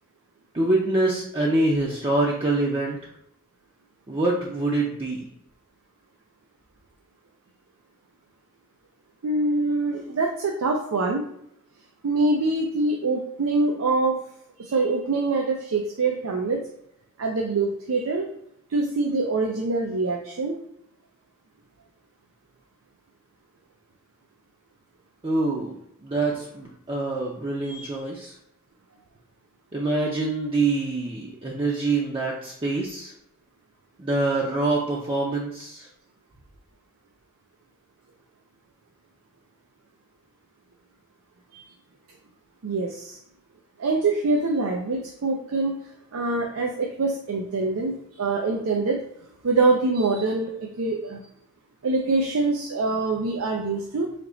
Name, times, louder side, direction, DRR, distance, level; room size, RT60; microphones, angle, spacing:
voice 1, 0.5-3.0 4.1-5.2 25.2-25.7 26.0-28.3 29.7-33.1 34.0-35.9, right 2 dB, 25° right, -4 dB, 0.5 m, -25 dB
voice 2, 9.2-11.3 12.0-14.2 14.6-16.6 17.2-18.3 18.7-20.6 27.6-27.9 41.5-41.6 42.6-43.2 43.8-45.8 46.1-49.0 49.4-51.2 51.8-54.1, right 3 dB, 85° right, 1 dB, 0.5 m, -24 dB
3.4 x 2.9 x 3.8 m, 0.74 s
head